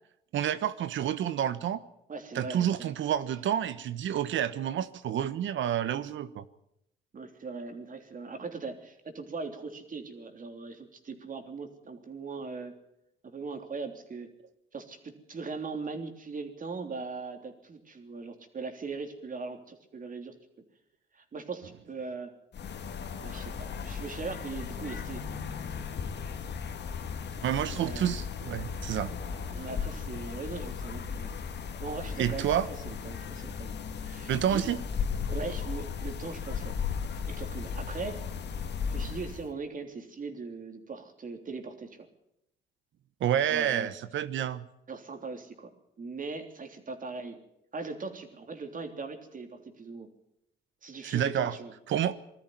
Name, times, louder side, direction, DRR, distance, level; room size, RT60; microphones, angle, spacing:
voice 1, 0.3-1.8 2.3-6.4 27.4-29.1 32.2-32.7 34.3-34.8 43.2-44.6 51.0-51.5 51.9-52.2, right 10 dB, 70° right, 14 dB, 1.1 m, -29 dB
voice 2, 2.1-2.9 7.1-12.8 13.2-14.3 14.7-20.3 21.1-22.3 23.2-26.1 27.7-28.2 29.5-31.3 31.8-33.7 34.0-34.6 35.3-36.7 37.3-38.3 38.9-42.1 43.5-43.9 44.9-45.7 46.0-47.4 47.7-50.1 50.8-51.7, right 4 dB, 45° right, 5 dB, 3.3 m, -40 dB
sound 1, 22.5-39.5, left 6 dB, 60° left, 2.0 m, -36 dB
20.5 x 13.5 x 9.5 m, 0.81 s
cardioid pair, 90°, 20 cm